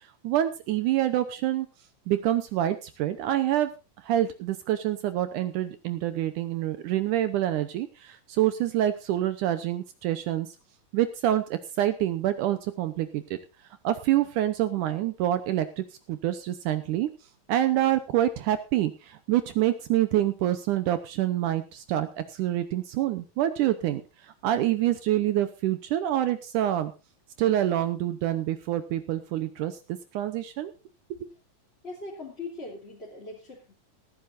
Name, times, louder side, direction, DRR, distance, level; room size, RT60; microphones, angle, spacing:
voice 1, 0.2-1.7 2.1-3.7 4.0-10.5 10.9-13.2 13.8-17.1 17.5-26.9 27.4-30.7 31.1-31.3, right 13 dB, 75° right, 10 dB, 2.2 m, -26 dB
voice 2, 31.8-33.7, left 3 dB, 20° left, -4 dB, 2.8 m, -40 dB
18.5 x 14.5 x 2.6 m, 0.28 s
omnidirectional pair, 3.9 m